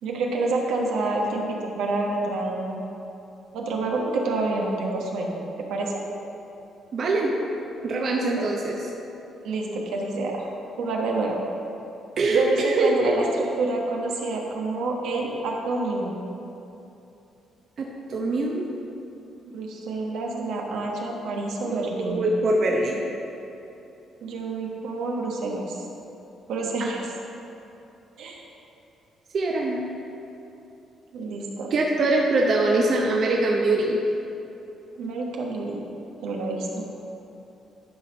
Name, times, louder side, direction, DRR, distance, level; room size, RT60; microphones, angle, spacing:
voice 1, 0.0-2.8 3.5-6.0 9.4-10.5 10.8-11.4 12.3-16.2 19.5-22.2 24.2-25.9 26.5-27.1 28.2-28.4 31.1-31.7 35.0-35.8 36.2-36.9, right 3 dB, 85° right, -1 dB, 1.2 m, -28 dB
voice 2, 6.9-7.3 7.8-8.8 12.2-13.3 17.8-18.7 21.6-23.0 26.8-26.9 29.3-29.8 31.7-34.0, right 2 dB, 55° right, -1 dB, 0.8 m, -23 dB
10.5 x 4.3 x 5.3 m, 2.9 s
cardioid pair, 90°, 0 cm